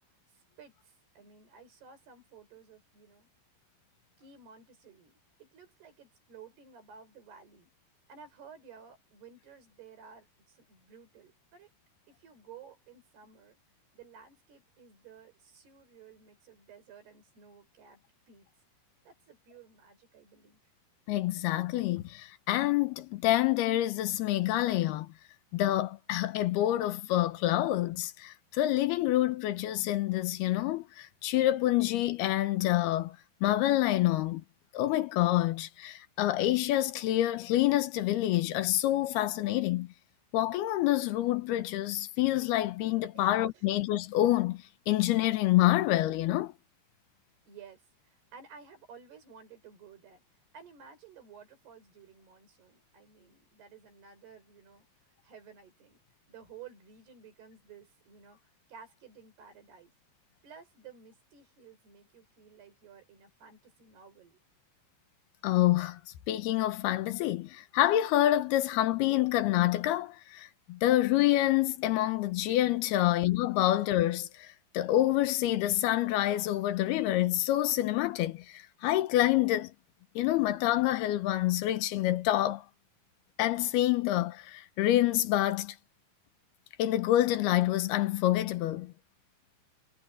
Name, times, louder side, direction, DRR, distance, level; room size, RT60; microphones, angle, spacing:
voice 1, 0.3-3.3 4.2-7.7 8.1-11.7 12.1-13.6 13.9-18.5 19.1-20.6 43.1-43.7 47.5-56.0 56.3-59.9 60.4-64.4 72.9-73.1 73.6-73.7, right 6 dB, 85° right, 7.2 m, -54 dB
voice 2, 21.1-25.1 25.5-34.4 34.7-39.9 40.3-46.5 65.4-66.0 66.3-79.7 80.2-82.6 83.4-85.8 86.8-88.9, left 14 dB, 85° left, 3.0 m, -27 dB
omnidirectional pair, 4.5 m